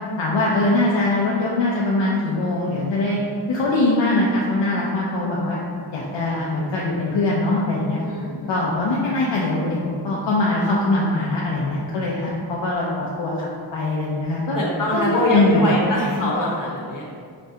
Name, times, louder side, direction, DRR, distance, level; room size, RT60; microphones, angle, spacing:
voice 1, 0.2-3.2 3.5-5.6 5.9-8.0 8.5-14.6 14.9-15.0 15.3-15.7, left 2 dB, 65° left, -5 dB, 0.6 m, -22 dB
voice 2, 8.0-8.7 14.5-17.0, left 1 dB, 40° left, -5 dB, 1.1 m, -23 dB
5.9 x 2.2 x 2.7 m, 2.1 s
cardioid pair, 85°, 48 cm